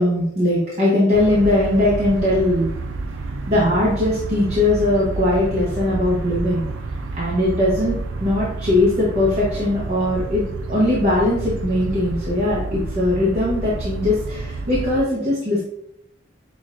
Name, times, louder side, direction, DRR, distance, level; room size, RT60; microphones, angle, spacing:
voice 1, 0.0-2.7 3.5-6.6 7.2-10.4 10.7-15.6, left 1 dB, 35° right, -7 dB, 0.9 m, -20 dB
sound 1, 1.1-15.0, right 2 dB, 90° right, 0.5 m, -29 dB
6.0 x 2.4 x 2.4 m, 0.77 s
head